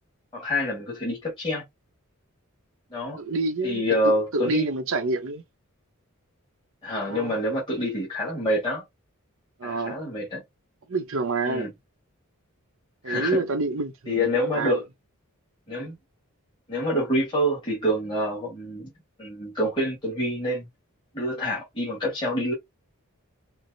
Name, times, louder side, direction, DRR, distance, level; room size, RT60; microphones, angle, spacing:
voice 1, 0.3-1.6 2.9-3.2 3.6-4.7 6.8-8.8 9.6-10.4 11.4-11.7 13.0-13.4 14.1-14.8 15.7-16.0 16.7-18.9 19.2-20.6 21.1-22.5, equal, 20° left, 1.4 m, -27 dB
voice 2, 3.2-5.4 7.1-7.3 9.6-10.0 10.9-11.7 13.0-14.8, right 3 dB, 60° right, 0.7 m, -28 dB
4.5 x 2.0 x 2.6 m
head